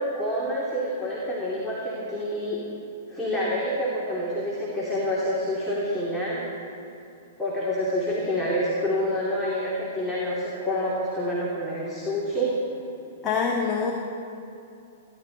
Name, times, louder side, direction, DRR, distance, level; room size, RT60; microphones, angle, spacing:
voice 1, 0.0-2.6 3.1-6.5 7.4-12.5, equal, 5° left, -7 dB, 2.8 m, -27 dB
voice 2, 13.2-13.9, left 5 dB, 25° left, -1 dB, 1.5 m, -24 dB
25.5 x 11.5 x 4.1 m, 2.7 s
hypercardioid pair, 110°, 0 cm